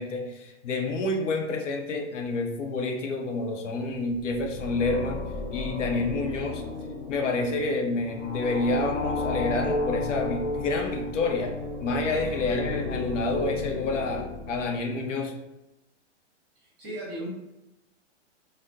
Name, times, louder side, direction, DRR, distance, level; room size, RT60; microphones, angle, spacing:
voice 1, 0.0-5.2 5.5-6.6 7.1-15.3, left 3 dB, 85° left, 2 dB, 0.7 m, -28 dB
sound 1, 4.1-15.2, left 2 dB, 25° left, 0.4 m, -33 dB
voice 2, 16.6-17.3, right 1 dB, 20° right, -7 dB, 0.9 m, -37 dB
3.5 x 2.1 x 2.7 m, 0.92 s
hypercardioid pair, 180°, 36 cm